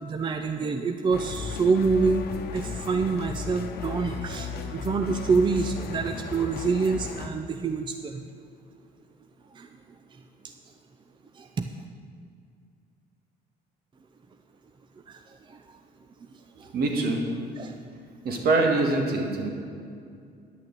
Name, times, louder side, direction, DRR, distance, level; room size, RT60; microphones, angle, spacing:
voice 1, 0.0-8.2 9.5-9.7 11.4-11.7 15.1-15.2 15.5-15.6 16.6-16.7 17.6-17.7, right 4 dB, 30° right, 6 dB, 0.6 m, -26 dB
sound 1, 1.1-7.3, left 6 dB, 70° left, 1.0 m, -36 dB
voice 2, 16.7-17.3 18.2-19.5, right 2 dB, 65° right, 2 dB, 2.0 m, -24 dB
10.5 x 6.4 x 9.0 m, 2.3 s
cardioid pair, 110°, 17 cm